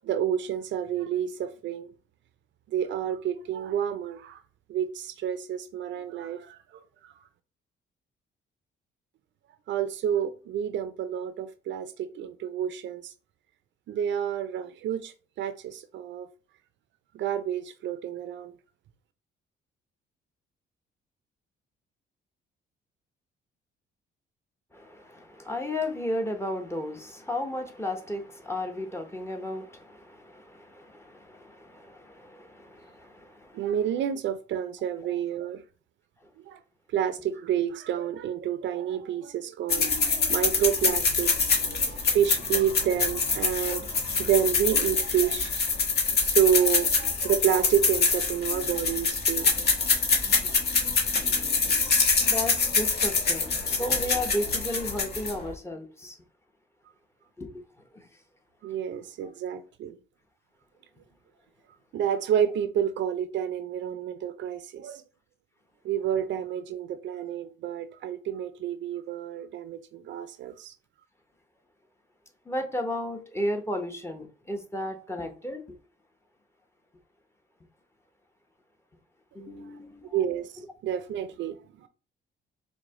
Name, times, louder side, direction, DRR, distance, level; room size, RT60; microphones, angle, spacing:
voice 1, 0.0-1.9 2.7-4.4 4.7-6.6 9.7-13.1 13.9-16.3 17.1-18.5 33.5-35.6 36.5-36.6 36.9-45.5 46.2-49.9 58.6-60.0 61.9-65.0 65.8-70.7 80.1-80.5 80.8-81.9, right 9 dB, 65° right, 0.4 m, -29 dB
voice 2, 24.7-33.7 35.1-35.2 41.5-42.0 52.3-56.2 57.4-57.6 57.9-58.1 59.2-59.3 72.4-75.8 79.3-80.2, left 1 dB, 15° left, 0.8 m, -34 dB
sound 1, 39.7-55.5, left 4 dB, 55° left, 1.1 m, -25 dB
4.8 x 2.1 x 3.6 m
cardioid pair, 90°, 20 cm